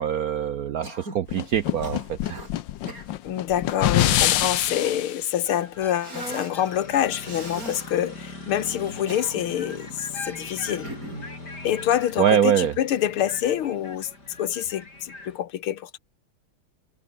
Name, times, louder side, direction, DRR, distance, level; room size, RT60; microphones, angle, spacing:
voice 1, 0.0-2.4 12.2-12.7, right 9 dB, 65° right, 0.9 m, -24 dB
Cough, 0.8-1.3 1.8-2.5 2.9-3.1 3.8-5.0 6.0-6.6 7.2-7.9 8.8-9.7 10.8-11.3, right 1 dB, 40° right, 8.6 m, -39 dB
sound 1, 1.3-5.2, left 12 dB, 65° left, 1.5 m, -25 dB
voice 2, 3.2-10.9 11.6-14.1 14.4-16.0, left 11 dB, 90° left, 2.1 m, -26 dB
sound 2, 5.4-15.4, left 2 dB, 50° left, 6.9 m, -40 dB
omnidirectional pair, 2.3 m